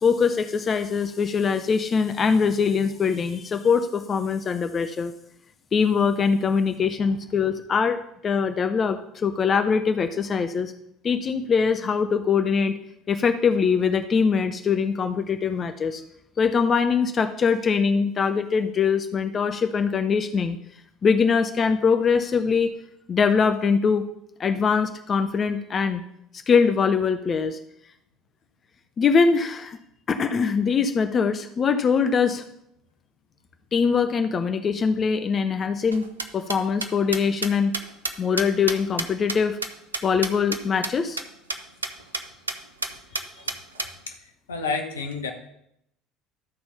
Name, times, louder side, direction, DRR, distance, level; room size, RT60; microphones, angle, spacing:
voice 1, 0.0-5.1 5.7-10.7 11.0-12.8 13.1-16.0 16.4-20.6 21.0-22.7 23.1-24.0 24.4-26.0 26.3-27.6 29.0-29.8 30.1-32.4 33.7-36.1 36.3-37.7 38.2-39.6 40.0-41.2, left 5 dB, 30° left, 9 dB, 0.5 m, -22 dB
sound 1, 35.9-40.6 40.8-40.9 41.2-41.3 41.5-41.6 41.8-42.2 42.5-42.6 42.8-43.9, right 3 dB, 80° right, 0.5 m, -29 dB
voice 2, 44.5-45.3, left 4 dB, 75° left, 5 dB, 1.0 m, -29 dB
12.5 x 4.3 x 5.6 m, 0.75 s
figure-of-eight pair, 65°, 0 cm